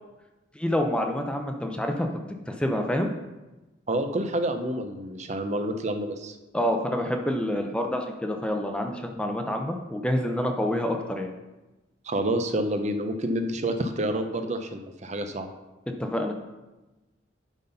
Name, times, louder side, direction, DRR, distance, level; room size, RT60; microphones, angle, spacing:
voice 1, 0.6-2.1 2.5-3.1 6.5-11.3 16.0-16.3, equal, 5° left, 3 dB, 0.6 m, -27 dB
voice 2, 3.9-6.4 12.0-15.5, right 1 dB, 35° right, 7 dB, 0.6 m, -28 dB
10.5 x 3.9 x 5.4 m, 1.1 s
head